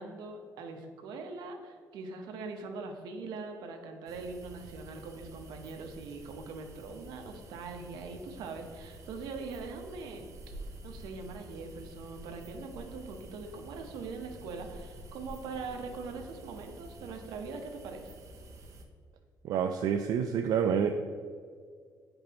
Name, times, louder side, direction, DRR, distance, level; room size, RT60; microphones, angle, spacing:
voice 1, 0.0-10.3 10.8-18.1, right 4 dB, 85° right, 4 dB, 0.9 m, -42 dB
sound 1, 4.1-18.8, right 1 dB, 50° right, 0.9 m, -49 dB
voice 2, 19.4-21.0, right 7 dB, 70° right, 6 dB, 0.4 m, -28 dB
9.2 x 5.2 x 3.0 m, 2.1 s
cardioid pair, 115°, 7 cm